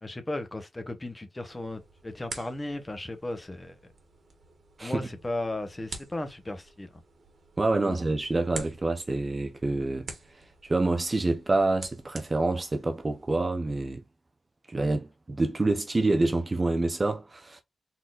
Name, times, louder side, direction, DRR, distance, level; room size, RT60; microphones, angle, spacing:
voice 1, 0.0-3.9 4.8-6.9 7.8-8.0, left 2 dB, 20° left, 0.9 m, -35 dB
sound 1, 1.4-13.6, right 3 dB, 50° right, 1.4 m, -47 dB
voice 2, 7.6-10.1 10.6-14.0 14.7-17.6, right 2 dB, 25° right, 0.6 m, -27 dB
4.2 x 3.8 x 2.4 m
wide cardioid pair, 140°, 0 cm